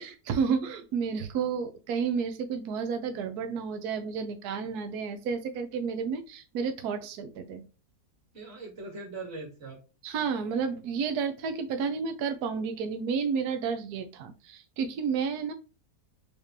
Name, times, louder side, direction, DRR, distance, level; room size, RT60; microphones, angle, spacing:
voice 1, 0.0-7.6 10.0-15.5, right 6 dB, 75° right, 1.2 m, -31 dB
voice 2, 8.3-9.8, right 3 dB, 40° right, 2.0 m, -41 dB
4.9 x 3.3 x 2.7 m
omnidirectional pair, 1.7 m